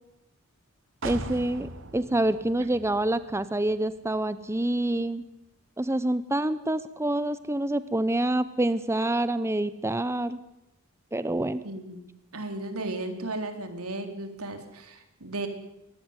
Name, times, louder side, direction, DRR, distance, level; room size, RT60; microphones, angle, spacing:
voice 1, 1.0-5.2 5.8-10.4 11.1-11.6, right 1 dB, 10° right, 13 dB, 0.8 m, -27 dB
sound 1, 1.0-4.8 5.1-5.2, right 2 dB, 65° right, 2.2 m, -41 dB
voice 2, 11.6-12.1 12.3-15.5, right 2 dB, 85° right, 6 dB, 3.7 m, -35 dB
23.5 x 19.0 x 9.8 m, 0.90 s
head